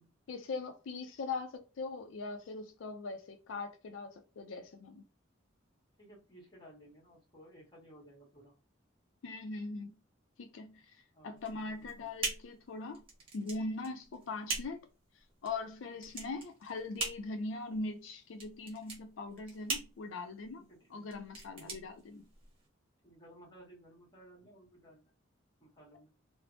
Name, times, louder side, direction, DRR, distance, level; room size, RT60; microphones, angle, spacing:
voice 1, 0.3-5.0 9.2-10.0 10.4-13.0 13.3-14.8 15.4-22.2, left 3 dB, 85° left, 0.4 m, -41 dB
voice 2, 6.0-8.5 11.1-12.2 20.5-21.1 21.5-21.8 23.0-25.1 25.6-26.1, right 1 dB, 25° left, 1.2 m, -57 dB
sound 1, 11.4-22.7, right 3 dB, 30° right, 1.0 m, -42 dB
3.2 x 2.0 x 2.6 m
head